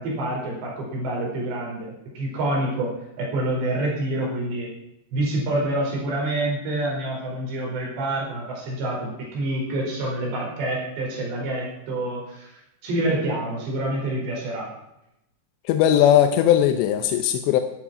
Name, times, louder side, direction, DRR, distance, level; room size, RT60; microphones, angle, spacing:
voice 1, 0.0-4.7 5.1-14.7, right 1 dB, 85° right, -2 dB, 6.9 m, -27 dB
voice 2, 15.7-17.6, left 10 dB, 90° left, 7 dB, 3.1 m, -18 dB
14.0 x 12.0 x 6.1 m, 0.85 s
omnidirectional pair, 4.9 m